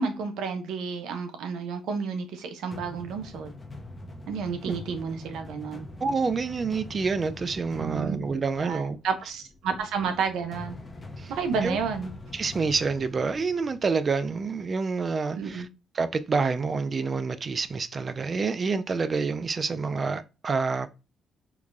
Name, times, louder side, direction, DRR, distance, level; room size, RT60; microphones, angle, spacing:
voice 1, 0.0-3.5 4.3-5.9 7.8-8.2 8.6-10.7 11.3-12.1 15.3-15.7, right 5 dB, 85° right, 0.6 m, -31 dB
sound 1, 2.7-14.6, left 2 dB, 25° left, 0.7 m, -44 dB
voice 2, 6.0-9.0 11.2-11.3 11.6-11.8 12.3-15.7 15.9-20.9, right 4 dB, 40° right, 0.3 m, -28 dB
4.7 x 2.2 x 2.5 m
cardioid pair, 90°, 0 cm